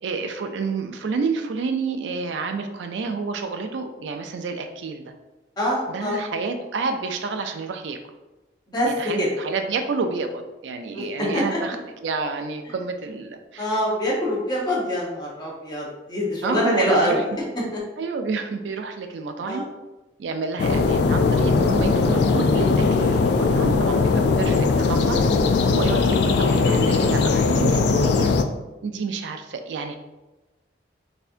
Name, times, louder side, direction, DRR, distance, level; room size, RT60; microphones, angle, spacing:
voice 1, 0.0-5.1 5.9-8.0 8.9-11.8 12.0-13.7 16.4-17.2 18.0-19.6 20.2-25.2 25.7-28.3 28.8-29.9, right 4 dB, 80° right, 6 dB, 0.4 m, -29 dB
voice 2, 5.6-6.3 8.7-8.9 9.2-9.3 10.9-11.6 13.6-17.4 19.4-19.6 20.9-21.1, equal, 25° left, -5 dB, 1.0 m, -25 dB
sound 1, 20.6-28.4, left 4 dB, 65° left, 0.3 m, -19 dB
4.1 x 2.7 x 2.5 m, 1.1 s
head